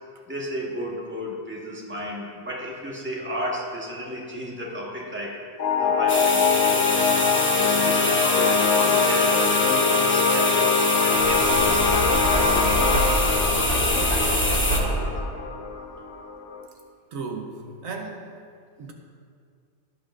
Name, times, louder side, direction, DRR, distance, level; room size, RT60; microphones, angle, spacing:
voice 1, 0.3-5.5 5.8-13.3 13.6-15.2, equal, 10° right, -3 dB, 1.4 m, -34 dB
sound 1, 5.6-16.6, left 5 dB, 60° left, 0.9 m, -23 dB
sound 2, 6.1-14.8, left 1 dB, 10° left, 0.7 m, -26 dB
Knock, 11.1-15.2, right 1 dB, 50° right, 2.9 m, -26 dB
voice 2, 17.1-18.3 18.8-18.9, right 4 dB, 75° right, 3 dB, 1.3 m, -35 dB
17.0 x 8.5 x 2.5 m, 2.2 s
omnidirectional pair, 1.4 m